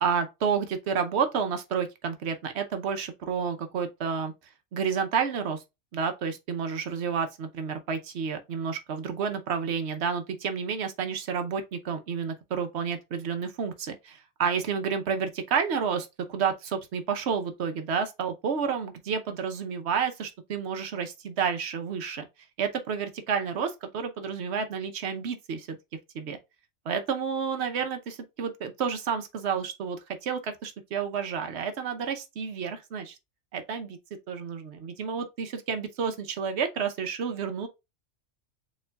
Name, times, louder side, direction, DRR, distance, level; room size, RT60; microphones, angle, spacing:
voice 1, 0.0-4.3 4.7-5.6 5.9-22.3 22.6-25.8 26.1-26.4 26.9-33.2 33.5-34.0 34.3-37.7, right 6 dB, 65° right, 1.0 m, -30 dB
6.8 x 3.0 x 2.2 m
omnidirectional pair, 1.3 m